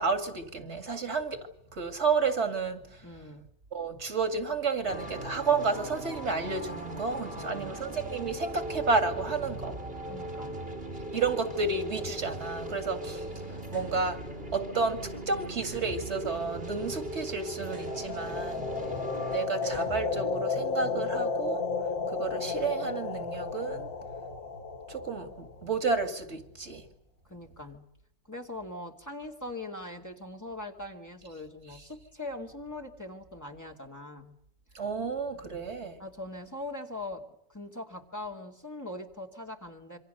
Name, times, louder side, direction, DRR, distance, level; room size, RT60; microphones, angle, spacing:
voice 1, 0.0-3.0 3.7-9.8 11.1-13.2 13.7-14.2 14.5-18.7 19.3-21.7 22.1-23.9 24.9-26.8 34.7-36.0, right 4 dB, 80° right, 2.6 m, -31 dB
voice 2, 3.0-3.5 7.3-7.8 10.1-10.6 18.6-19.0 27.2-27.9 28.2-34.4 35.3-35.6 36.0-40.0, left 2 dB, 15° left, 2.6 m, -42 dB
sound 1, 4.9-19.5, right 1 dB, 60° right, 3.5 m, -39 dB
sound 2, 13.6-13.9 15.1-15.3 15.6-17.0 17.6-18.0 19.1-19.3 19.6-20.7, right 2 dB, 35° right, 5.7 m, -45 dB
sound 3, 17.7-25.7, left 4 dB, 55° left, 1.5 m, -33 dB
27.0 x 24.5 x 6.8 m
omnidirectional pair, 1.1 m